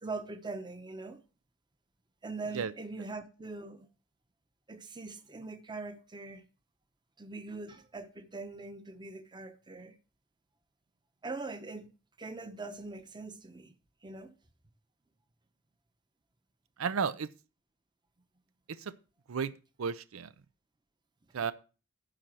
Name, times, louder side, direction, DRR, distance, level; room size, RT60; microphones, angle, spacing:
voice 1, 0.0-1.2 2.2-3.9 4.7-6.4 7.2-10.0 11.2-11.9 12.2-13.7 14.0-14.3, right 3 dB, 20° right, 0.9 m, -42 dB
voice 2, 16.8-17.3 18.8-18.9 19.3-19.5 19.8-20.3 21.3-21.5, right 6 dB, 85° right, 0.5 m, -32 dB
10.0 x 4.3 x 7.6 m
head